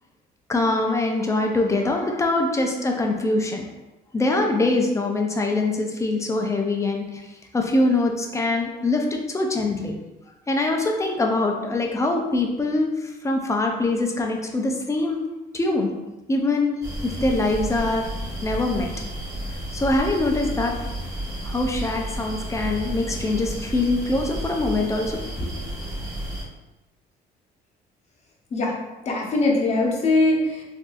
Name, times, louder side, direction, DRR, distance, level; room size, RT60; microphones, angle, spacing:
voice 1, 0.5-3.7 4.1-7.2 7.5-10.0 10.5-15.2 15.5-15.9 16.3-18.1 18.4-18.9 19.7-20.7 21.4-25.5, left 2 dB, 15° left, 2 dB, 0.5 m, -23 dB
sound 1, 16.8-26.4, right 1 dB, 20° right, 1.1 m, -32 dB
voice 2, 29.1-30.6, left 2 dB, 40° left, -1 dB, 0.9 m, -21 dB
3.8 x 2.6 x 2.5 m, 1.0 s
cardioid pair, 110°, 17 cm